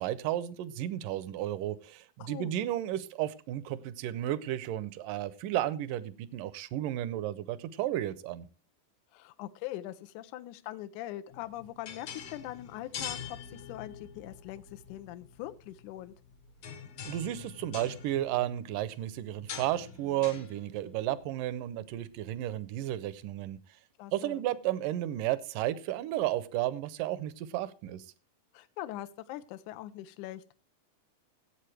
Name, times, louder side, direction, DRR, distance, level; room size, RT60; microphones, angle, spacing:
voice 1, 0.0-8.5 17.0-23.6 24.1-28.1, right 13 dB, 75° right, 16 dB, 2.1 m, -33 dB
voice 2, 2.2-2.5 9.1-16.1 24.0-24.4 28.5-30.5, left 14 dB, 80° left, 10 dB, 1.8 m, -42 dB
sound 1, 11.3-22.7, left 7 dB, 60° left, 1.7 m, -46 dB
17.0 x 8.3 x 3.3 m, 0.34 s
omnidirectional pair, 4.2 m